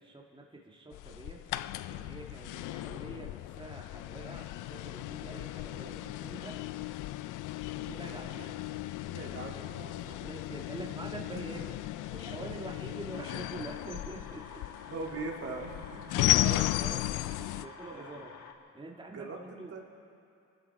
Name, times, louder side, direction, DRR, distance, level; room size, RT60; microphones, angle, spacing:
voice 1, 0.0-6.6 7.9-8.6 9.4-11.8 12.1-14.6 15.9-16.0 16.3-18.3 18.7-19.7, right 2 dB, 15° right, -1 dB, 1.7 m, -45 dB
sound 1, 0.9-17.6, left 16 dB, 85° left, 0.5 m, -35 dB
voice 2, 9.0-9.9 14.9-16.5 17.9-18.2 19.1-19.8, right 3 dB, 50° right, 0 dB, 2.1 m, -42 dB
sound 2, 13.1-18.5, left 6 dB, 65° left, 1.4 m, -49 dB
25.5 x 12.5 x 4.6 m, 2.6 s
cardioid pair, 90°, 30 cm